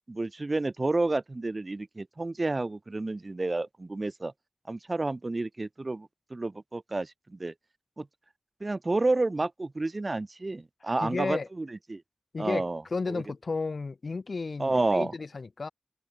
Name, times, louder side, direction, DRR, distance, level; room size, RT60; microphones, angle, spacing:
voice 1, 0.1-4.3 4.7-7.5 8.0-8.1 8.6-12.0 12.4-12.8 13.1-13.2 14.6-15.1, right 2 dB, 50° right, 0.3 m, -30 dB
voice 2, 11.0-11.5 12.3-15.7, left 4 dB, 85° left, 0.7 m, -33 dB
wide cardioid pair, 50°, 0 cm